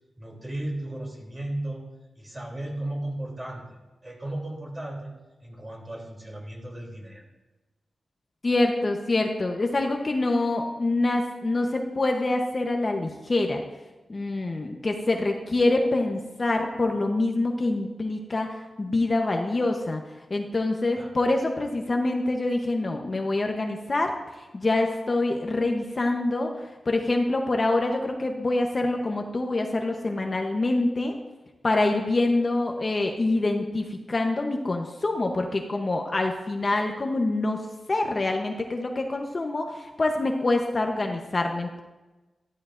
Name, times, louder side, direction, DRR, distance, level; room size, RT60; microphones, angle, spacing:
voice 1, 0.2-1.8 2.1-3.6 4.0-5.1 5.4-7.3 21.0-21.1, right 1 dB, 25° right, -2 dB, 3.1 m, -35 dB
voice 2, 8.4-13.6 14.1-20.0 20.3-24.1 24.5-31.2 31.6-41.8, left 2 dB, 35° left, 3 dB, 0.9 m, -25 dB
13.0 x 13.0 x 2.6 m, 1.1 s
wide cardioid pair, 100°, 0 cm